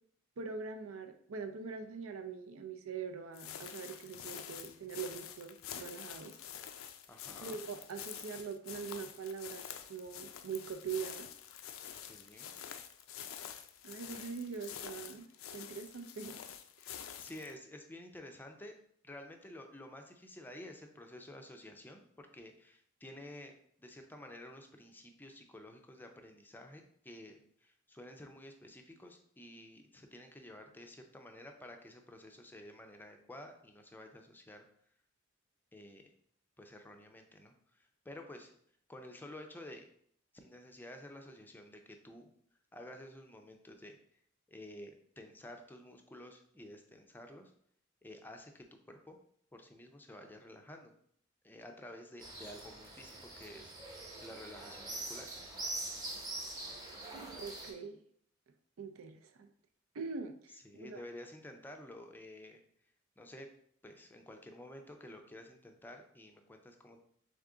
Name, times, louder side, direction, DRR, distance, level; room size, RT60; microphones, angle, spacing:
voice 1, 0.4-6.4 7.4-9.6 9.9-11.3 13.8-15.3 15.5-16.4 57.4-58.0 58.8-59.5 59.9-61.0, right 5 dB, 85° right, 7 dB, 0.5 m, -43 dB
sound 1, 3.3-17.5, left 9 dB, 75° left, 0.4 m, -47 dB
voice 2, 7.1-7.6 12.0-12.5 17.2-18.7 19.0-34.6 35.7-36.0 36.6-38.5 38.9-39.9 40.3-42.3 42.7-44.0 44.5-47.5 48.0-49.2 49.5-50.9 51.4-55.3 60.6-62.6 63.2-63.5 63.8-67.0, left 1 dB, 10° left, 4 dB, 0.4 m, -51 dB
sound 2, 52.2-57.7, right 2 dB, 20° right, 0.8 m, -44 dB
3.6 x 3.5 x 3.7 m, 0.64 s
head